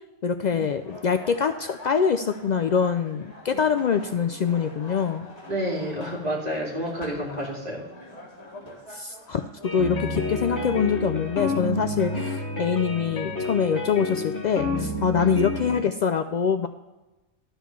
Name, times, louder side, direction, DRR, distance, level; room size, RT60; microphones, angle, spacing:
voice 1, 0.2-5.3 8.9-16.7, left 6 dB, 90° left, 9 dB, 0.3 m, -24 dB
sound 1, 0.6-12.4, left 1 dB, 30° left, 2.0 m, -45 dB
voice 2, 5.5-7.8 15.1-15.3, equal, 30° right, -3 dB, 3.0 m, -30 dB
sound 2, 9.6-15.8, left 2 dB, 60° left, 1.7 m, -29 dB
12.0 x 4.4 x 7.0 m, 1.1 s
omnidirectional pair, 1.3 m